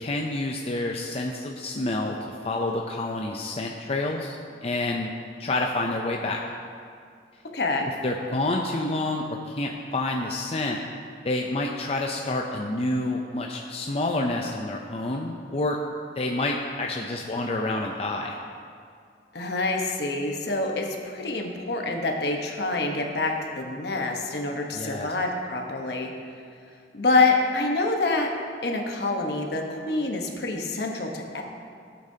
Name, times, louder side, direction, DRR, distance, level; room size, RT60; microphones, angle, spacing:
voice 1, 0.0-2.2 2.4-5.1 5.4-6.4 8.0-10.8 11.2-15.8 16.2-18.4 24.7-25.1, left 2 dB, 35° left, 0 dB, 0.5 m, -28 dB
voice 2, 7.5-7.9 19.3-26.1 26.9-28.3 28.6-31.4, left 3 dB, 65° left, 2 dB, 1.1 m, -26 dB
15.5 x 8.3 x 2.8 m, 2.3 s
head